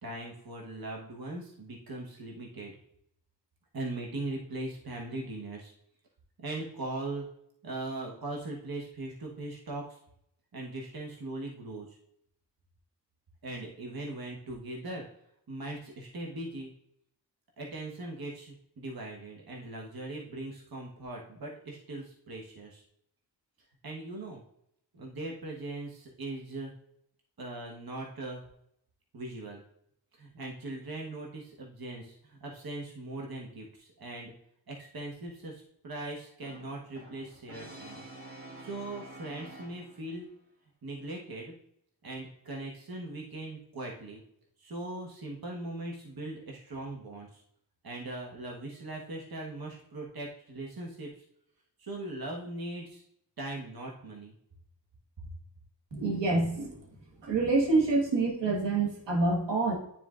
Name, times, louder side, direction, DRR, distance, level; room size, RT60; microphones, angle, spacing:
voice 1, 0.0-2.7 3.7-5.7 6.4-7.2 7.6-10.0 10.5-12.0 13.4-15.0 15.5-16.7 17.6-22.8 23.8-24.4 24.9-26.7 27.4-28.4 29.1-29.6 30.1-34.3 34.7-38.0 38.6-40.3 40.8-41.5 42.0-44.2 44.6-47.4 47.8-51.2 51.8-53.0 53.4-54.3, right 2 dB, 55° right, -1 dB, 1.3 m, -40 dB
Brass instrument, 36.4-40.2, right 1 dB, 30° right, 2.2 m, -48 dB
voice 2, 55.9-56.8 57.2-59.7, right 3 dB, 80° right, -1 dB, 1.6 m, -27 dB
9.7 x 4.4 x 2.4 m, 0.74 s
cardioid pair, 45°, 43 cm